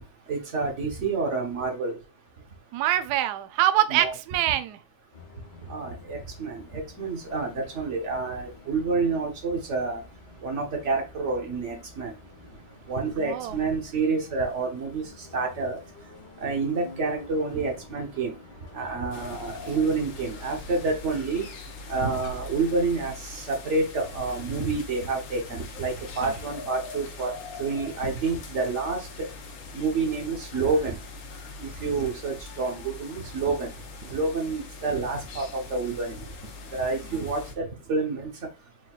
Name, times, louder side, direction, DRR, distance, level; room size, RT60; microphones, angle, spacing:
voice 1, 0.3-2.0 3.9-4.1 5.7-10.0 10.4-12.1 12.9-15.0 15.3-15.8 16.4-18.3 18.7-21.5 21.9-27.3 27.6-29.0 29.7-31.0 31.6-33.7 34.1-36.2 36.7-38.3, right 4 dB, 45° right, 1.1 m, -28 dB
voice 2, 2.7-4.8 13.2-13.5, right 13 dB, 90° right, 0.8 m, -24 dB
sound 1, 5.1-24.8, left 2 dB, 60° left, 1.6 m, -49 dB
sound 2, 19.1-37.5, left 4 dB, 75° left, 1.6 m, -42 dB
4.6 x 3.9 x 2.4 m
omnidirectional pair, 2.3 m